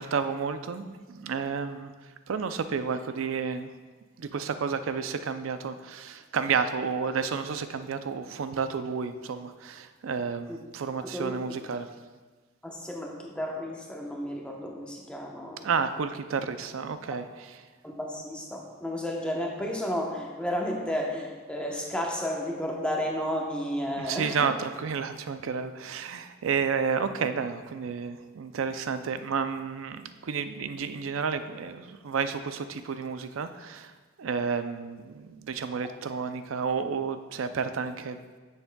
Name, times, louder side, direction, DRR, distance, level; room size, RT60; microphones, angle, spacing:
voice 1, 0.0-1.9 2.3-3.7 4.2-11.9 15.6-17.6 24.0-33.9 34.2-38.2, right 6 dB, 75° right, 10 dB, 0.4 m, -31 dB
voice 2, 12.6-15.7 17.8-24.5, equal, 5° left, -1 dB, 0.9 m, -32 dB
9.9 x 7.2 x 2.3 m, 1.4 s
head